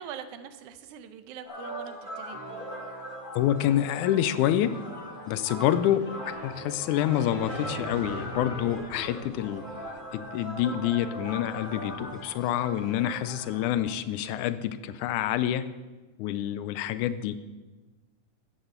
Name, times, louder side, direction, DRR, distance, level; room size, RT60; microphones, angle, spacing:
voice 1, 0.0-2.4, right 8 dB, 80° right, 10 dB, 2.2 m, -43 dB
sound 1, 1.4-13.9, equal, 20° left, 1.7 m, -40 dB
sound 2, 2.3-10.1, right 3 dB, 50° right, 2.5 m, -49 dB
voice 2, 3.4-4.7 5.3-9.6 10.1-15.6 16.2-17.4, left 11 dB, 85° left, 13 dB, 2.0 m, -27 dB
sound 3, 5.2-13.6, equal, 60° left, 6.1 m, -44 dB
13.5 x 9.3 x 4.4 m, 1.2 s
omnidirectional pair, 3.5 m